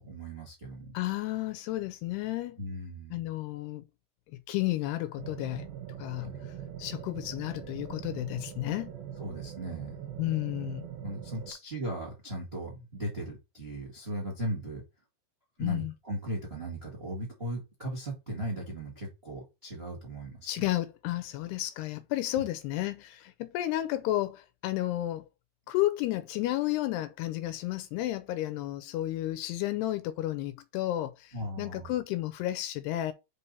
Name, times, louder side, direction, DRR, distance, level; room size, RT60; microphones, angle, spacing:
voice 1, 0.0-0.9 2.6-3.2 6.2-6.5 9.2-9.9 11.0-14.8 15.6-20.7 31.3-31.9, right 1 dB, 30° right, 1.0 m, -37 dB
voice 2, 0.9-2.6 3.1-3.9 4.3-5.7 6.0-6.3 6.8-8.9 10.2-10.8 15.6-15.9 20.5-25.3 25.7-33.1, left 15 dB, 80° left, 2.5 m, -32 dB
sound 1, 5.2-11.5, right 9 dB, 70° right, 2.6 m, -42 dB
5.5 x 5.3 x 4.0 m
omnidirectional pair, 5.0 m